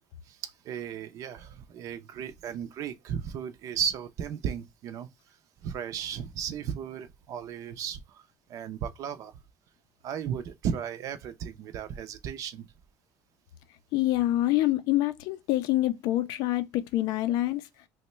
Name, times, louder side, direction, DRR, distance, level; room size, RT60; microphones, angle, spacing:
voice 1, 0.3-5.1 5.6-8.2 8.5-9.3 10.0-12.7, right 8 dB, 45° right, 0.5 m, -35 dB
voice 2, 13.9-17.6, left 15 dB, 65° left, 0.4 m, -26 dB
3.0 x 2.1 x 4.2 m
cardioid pair, 175°, 7 cm